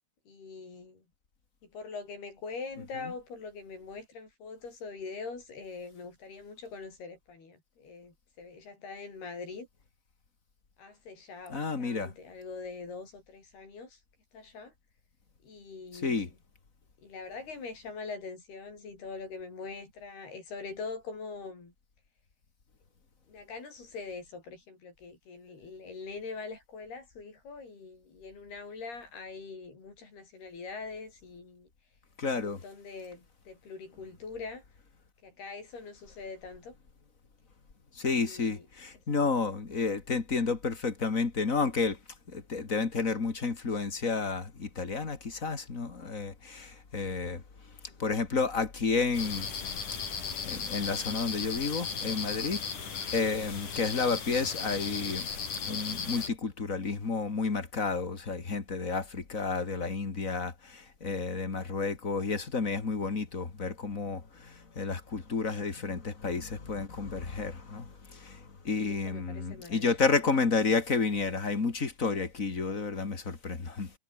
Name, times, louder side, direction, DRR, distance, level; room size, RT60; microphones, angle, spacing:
voice 1, 0.3-1.0 1.7-9.7 10.8-14.0 14.3-14.7 15.4-16.3 17.0-21.7 23.3-31.7 32.2-34.6 35.2-36.7 38.0-38.7 47.9-48.0 68.8-69.9, left 4 dB, 85° left, 9.5 m, -43 dB
voice 2, 11.5-12.1 16.0-16.3 32.2-32.6 38.0-42.0 42.3-47.4 48.0-49.5 50.4-52.6 53.1-55.3 55.6-73.9, left 4 dB, 25° left, 2.1 m, -31 dB
sound 1, 49.1-56.3, left 6 dB, 55° left, 5.4 m, -36 dB
omnidirectional pair, 4.4 m